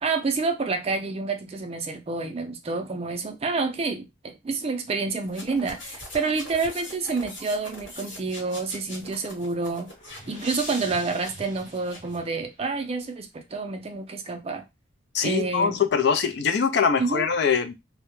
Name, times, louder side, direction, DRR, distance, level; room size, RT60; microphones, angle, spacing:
voice 1, 0.0-9.9 10.3-14.6 15.2-15.8 17.0-17.3, right 4 dB, 30° right, 0.3 m, -28 dB
sound 1, 5.2-12.2, left 1 dB, 80° left, 1.2 m, -43 dB
sound 2, 9.6-12.7, left 1 dB, 35° left, 0.8 m, -43 dB
voice 2, 15.1-17.7, left 6 dB, 55° left, 0.3 m, -23 dB
2.2 x 2.0 x 3.0 m
head